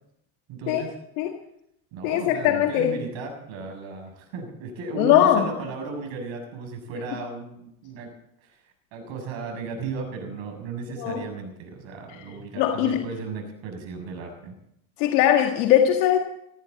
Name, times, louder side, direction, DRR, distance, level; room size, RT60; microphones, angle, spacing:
voice 1, 0.5-0.9 1.9-8.1 8.4-8.6 8.9-14.5, right 4 dB, 70° right, 4 dB, 7.2 m, -35 dB
voice 2, 2.0-2.9 5.0-5.4 11.0-11.2 12.6-13.0 15.0-16.2, left 11 dB, 85° left, 3 dB, 1.8 m, -20 dB
18.5 x 16.5 x 4.2 m, 0.77 s
supercardioid pair, 85°, 48 cm